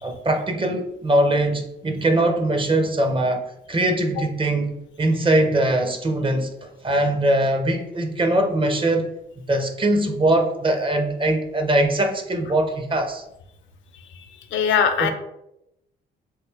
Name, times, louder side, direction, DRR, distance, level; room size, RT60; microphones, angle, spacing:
voice 1, 0.0-9.1 9.5-13.2 15.0-15.1, right 1 dB, 25° right, 5 dB, 0.5 m, -22 dB
voice 2, 14.5-15.1, left 7 dB, 75° left, 8 dB, 0.5 m, -19 dB
3.1 x 2.6 x 3.3 m, 0.85 s
cardioid pair, 90°, 20 cm